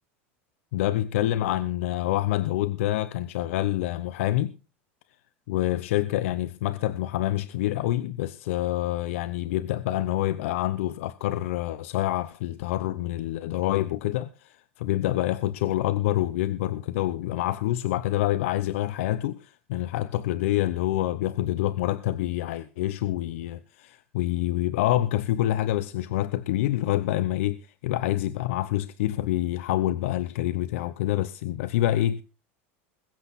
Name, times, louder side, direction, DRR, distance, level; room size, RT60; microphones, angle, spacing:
voice 1, 0.7-4.5 5.5-32.2, left 14 dB, 75° left, 0.8 m, -27 dB
21.5 x 8.1 x 4.1 m
supercardioid pair, 120°, 7 cm